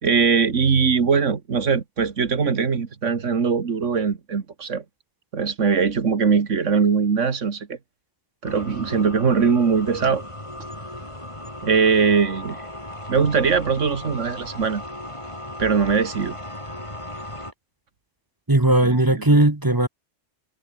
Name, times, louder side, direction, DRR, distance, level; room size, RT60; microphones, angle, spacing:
voice 1, 0.0-4.8 5.3-7.8 8.4-10.2 11.6-12.6 13.1-14.8 15.6-16.4 18.8-19.4, right 5 dB, 80° right, 2.0 m, -21 dB
sound 1, 8.4-17.5, left 1 dB, 25° left, 5.0 m, -36 dB
voice 2, 18.5-19.9, right 2 dB, 20° right, 1.3 m, -17 dB
omnidirectional pair, 1.2 m